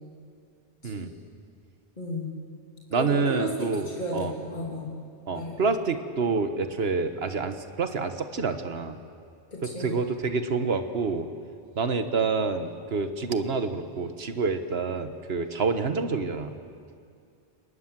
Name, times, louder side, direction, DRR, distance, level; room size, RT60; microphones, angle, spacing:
voice 1, 2.0-2.4 2.9-4.9 5.3-5.7 9.5-9.9, left 1 dB, 40° left, -4 dB, 3.2 m, -34 dB
voice 2, 2.9-4.3 5.3-9.0 9.6-11.3 11.8-16.5, right 4 dB, 70° right, 8 dB, 1.5 m, -28 dB
29.5 x 19.5 x 7.5 m, 2.3 s
omnidirectional pair, 1.1 m